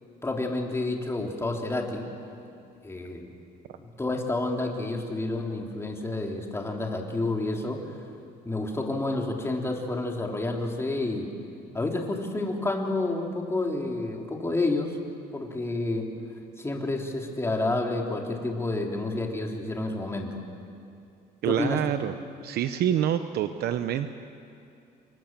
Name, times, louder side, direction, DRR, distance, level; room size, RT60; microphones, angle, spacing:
voice 1, 0.2-2.1 2.8-3.3 3.8-8.0 8.5-11.3 11.7-15.0 15.3-16.1 16.6-20.4 21.5-21.8, left 2 dB, 15° left, 1 dB, 3.5 m, -29 dB
voice 2, 21.4-22.1 22.4-24.1, right 10 dB, 70° right, 9 dB, 1.0 m, -26 dB
28.5 x 24.5 x 7.6 m, 2.5 s
cardioid pair, 110°, 17 cm